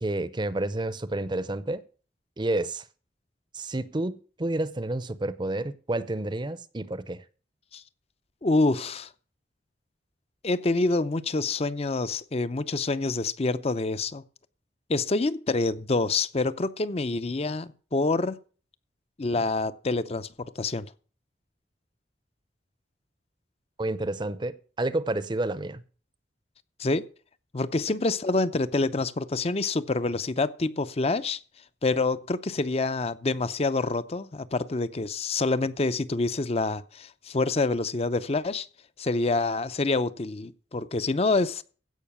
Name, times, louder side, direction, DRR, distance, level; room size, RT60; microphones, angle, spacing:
voice 1, 0.0-1.8 2.4-2.8 3.5-7.2 23.8-25.8, right 2 dB, 25° right, 0.7 m, -30 dB
voice 2, 8.4-9.1 10.4-14.2 14.9-18.4 19.2-20.9 26.8-27.0 27.5-31.4 31.8-38.7 39.0-41.6, left 3 dB, 35° left, 0.6 m, -27 dB
16.0 x 5.6 x 6.9 m
head